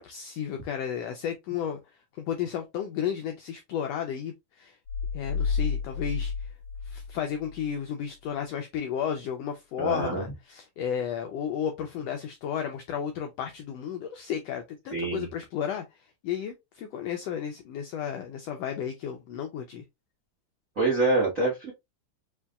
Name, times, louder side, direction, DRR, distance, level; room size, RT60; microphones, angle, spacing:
voice 1, 0.0-4.8 5.1-6.5 6.8-19.8, left 8 dB, 85° left, 1.4 m, -33 dB
sound 1, 4.9-7.7, left 5 dB, 65° left, 2.1 m, -31 dB
voice 2, 9.8-10.2 14.9-15.3 20.8-21.7, right 2 dB, 65° right, 0.8 m, -25 dB
5.5 x 2.6 x 2.3 m
omnidirectional pair, 3.5 m